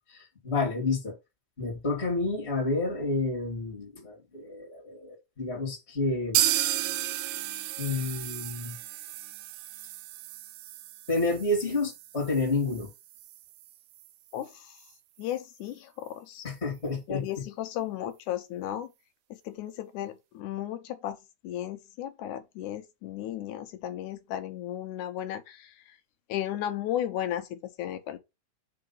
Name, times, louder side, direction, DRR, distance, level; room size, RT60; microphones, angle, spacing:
voice 1, 0.1-1.2 1.6-6.4 7.0-7.2 7.8-8.7 11.1-12.9 16.4-17.5, left 3 dB, 20° left, 2.4 m, -30 dB
sound 1, 6.3-14.1 14.4-14.5 14.8-14.9 15.3-15.4, right 13 dB, 80° right, 1.8 m, -33 dB
voice 2, 15.2-16.4 17.1-18.9 19.5-21.2 21.4-25.7 26.3-28.2, left 12 dB, 80° left, 2.3 m, -34 dB
4.9 x 3.8 x 5.6 m
omnidirectional pair, 3.6 m